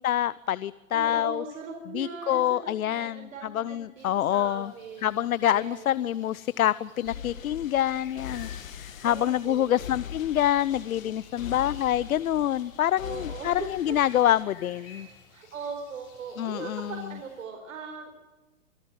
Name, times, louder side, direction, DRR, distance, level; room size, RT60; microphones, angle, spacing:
voice 1, 0.0-1.4 1.9-4.7 5.0-15.1 16.4-16.9, left 11 dB, 85° left, 18 dB, 0.8 m, -26 dB
voice 2, 0.9-5.2 5.5-5.9 7.1-7.7 9.0-9.8 13.0-14.0 14.8-15.0 15.3-18.2, right 5 dB, 75° right, 3 dB, 4.4 m, -40 dB
sound 1, 4.0-17.4, left 5 dB, 35° left, 7.0 m, -54 dB
sound 2, 7.1-14.4, left 9 dB, 70° left, 1.7 m, -42 dB
26.0 x 14.0 x 9.0 m, 1.1 s
hypercardioid pair, 165°, 41 cm